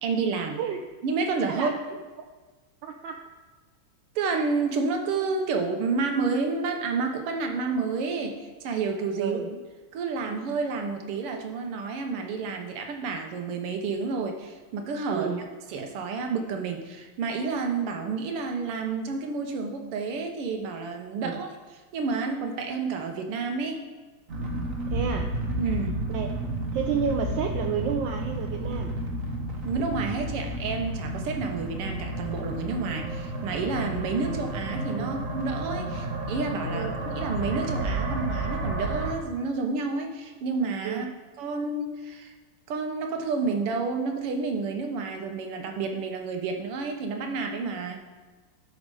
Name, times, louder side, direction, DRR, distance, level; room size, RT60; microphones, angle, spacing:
voice 1, 0.0-0.6 1.0-1.7 4.2-9.4 9.9-15.3 15.7-21.5 21.9-23.9 25.6-26.0 29.6-41.1 41.4-42.3 42.7-48.0, right 4 dB, 90° right, 4 dB, 2.0 m, -30 dB
voice 2, 2.8-3.2 9.2-9.5 15.1-15.4 21.2-21.4 24.9-25.3 26.1-26.3 26.7-28.9 35.0-35.1 36.7-36.9 40.8-41.0, right 7 dB, 75° right, 4 dB, 1.2 m, -30 dB
sound 1, 24.3-39.1, right 1 dB, 45° right, 1.3 m, -31 dB
12.0 x 5.4 x 4.8 m, 1.3 s
omnidirectional pair, 2.4 m